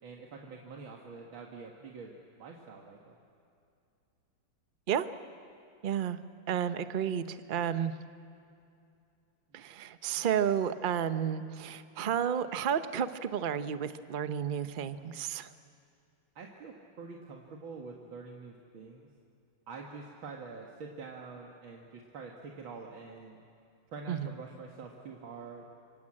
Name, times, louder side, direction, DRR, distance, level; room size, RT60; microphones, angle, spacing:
voice 1, 0.0-3.2 9.5-9.6 16.4-19.1 19.7-23.4 23.9-25.7, right 4 dB, 80° right, 0 dB, 2.5 m, -46 dB
voice 2, 5.8-6.2 6.5-7.9 9.5-15.5 24.1-24.3, right 8 dB, 55° right, 10 dB, 0.5 m, -31 dB
26.0 x 25.0 x 8.7 m, 2.5 s
omnidirectional pair, 2.2 m